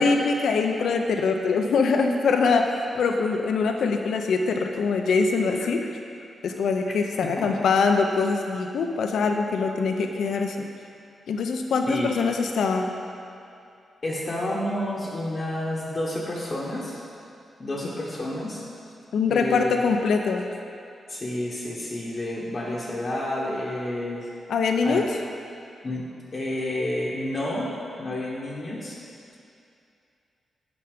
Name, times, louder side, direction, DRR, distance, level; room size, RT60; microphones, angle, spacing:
voice 1, 0.0-2.7 3.0-5.9 6.4-10.7 11.3-12.9 19.1-20.4 24.5-25.1, left 4 dB, 80° left, 4 dB, 0.5 m, -23 dB
voice 2, 14.0-17.0 17.6-18.6 19.3-19.8 21.1-24.3 24.8-25.1 25.8-26.0 26.3-27.7 28.0-29.0, left 1 dB, 30° left, -5 dB, 0.9 m, -30 dB
8.9 x 5.8 x 5.1 m, 2.6 s
wide cardioid pair, 160°, 0 cm